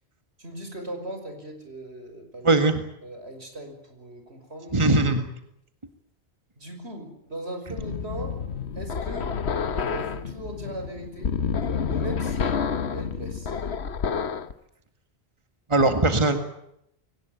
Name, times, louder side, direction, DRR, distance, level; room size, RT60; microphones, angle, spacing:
voice 1, 0.4-2.7 3.0-4.9 6.6-8.4 8.8-9.3 9.7-11.3 11.9-12.5 12.9-13.5, right 1 dB, 85° right, 5 dB, 6.1 m, -39 dB
voice 2, 2.4-2.8 4.7-5.3 15.7-16.4, right 2 dB, 30° right, 7 dB, 1.9 m, -20 dB
sound 1, 7.8-14.5, left 6 dB, 90° left, 1.4 m, -29 dB
23.0 x 19.0 x 9.2 m, 0.77 s
omnidirectional pair, 1.1 m